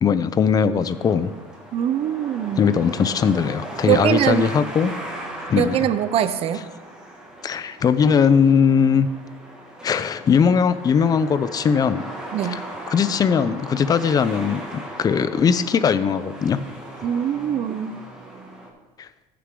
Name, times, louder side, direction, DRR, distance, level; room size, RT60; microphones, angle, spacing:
voice 1, 0.0-1.3 2.6-4.9 5.5-5.8 7.4-9.1 9.8-12.0 12.5-12.6 12.9-16.6 19.0-19.1, left 6 dB, 25° left, 13 dB, 0.5 m, -19 dB
sound 1, 0.8-18.7, right 1 dB, 5° right, 1.8 m, -38 dB
voice 2, 1.7-2.7 3.9-4.5 5.5-6.7 12.3-12.6 17.0-18.0, right 10 dB, 40° right, 13 dB, 0.6 m, -22 dB
14.5 x 6.8 x 3.7 m, 1.2 s
cardioid pair, 140°, 14 cm